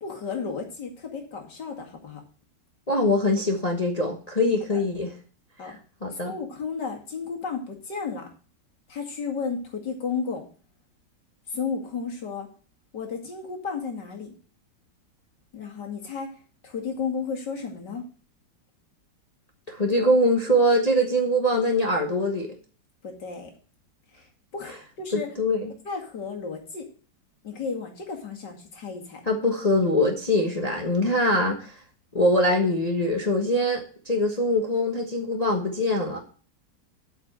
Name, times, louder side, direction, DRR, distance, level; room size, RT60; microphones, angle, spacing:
voice 1, 0.0-2.2 4.7-4.8 5.6-5.8 6.1-8.3 8.9-10.5 11.5-12.5 12.9-14.3 15.5-16.3 16.6-18.0 23.0-23.5 24.1-24.2 24.5-25.3 25.8-26.9 27.4-29.2, left 5 dB, 70° left, 2 dB, 2.8 m, -33 dB
voice 2, 2.9-5.1 5.6-5.7 6.0-6.3 19.7-22.5 25.1-25.7 29.3-31.7 32.1-36.2, left 1 dB, 25° left, 2 dB, 1.3 m, -23 dB
9.0 x 5.7 x 7.6 m, 0.39 s
omnidirectional pair, 1.9 m